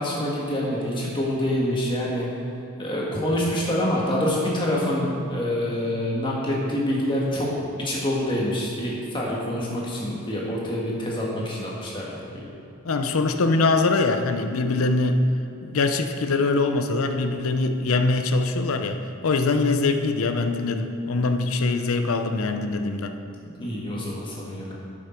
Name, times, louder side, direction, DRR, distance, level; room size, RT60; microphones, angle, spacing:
voice 1, 0.0-2.3 2.8-12.5 23.6-24.7, left 1 dB, 20° left, -4 dB, 1.6 m, -26 dB
voice 2, 12.8-15.2 15.6-23.1, left 3 dB, 75° left, 7 dB, 0.6 m, -23 dB
11.5 x 6.4 x 4.5 m, 2.7 s
head